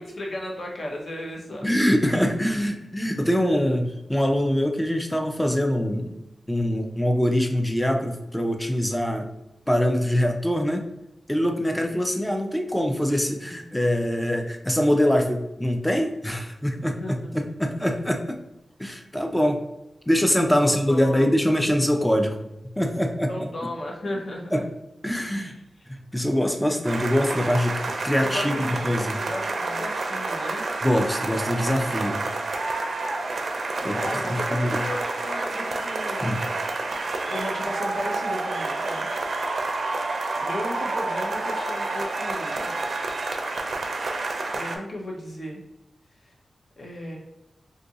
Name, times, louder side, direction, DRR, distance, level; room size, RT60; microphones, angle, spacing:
voice 1, 0.0-1.7 17.0-17.5 20.6-21.3 23.3-24.7 25.4-25.9 28.2-30.7 33.8-36.5 37.3-39.1 40.3-43.0 44.5-45.6 46.2-46.4 46.8-47.2, left 1 dB, 50° left, 0 dB, 0.8 m, -35 dB
voice 2, 1.6-6.2 6.5-9.3 9.7-10.8 11.3-18.4 18.8-19.6 20.1-22.4 22.8-23.3 24.5-24.6 25.0-25.5 25.9-29.2 30.8-32.3 33.8-34.9 36.2-36.4, equal, 10° left, 4 dB, 0.4 m, -24 dB
sound 1, 26.8-44.8, right 3 dB, 65° right, 0.5 m, -29 dB
2.6 x 2.5 x 3.9 m, 0.92 s
wide cardioid pair, 105°, 0 cm